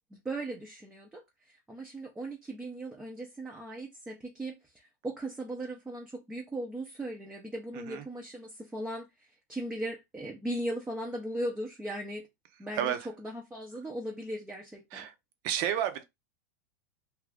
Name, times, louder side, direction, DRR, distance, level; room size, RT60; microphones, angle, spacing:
voice 1, 0.1-12.3 12.6-15.1, right 1 dB, 10° right, 0.6 m, -38 dB
voice 2, 7.7-8.0 12.7-13.1 14.9-15.1 15.4-16.0, right 10 dB, 50° right, 0.7 m, -31 dB
2.8 x 2.4 x 3.4 m
supercardioid pair, 135°, 9 cm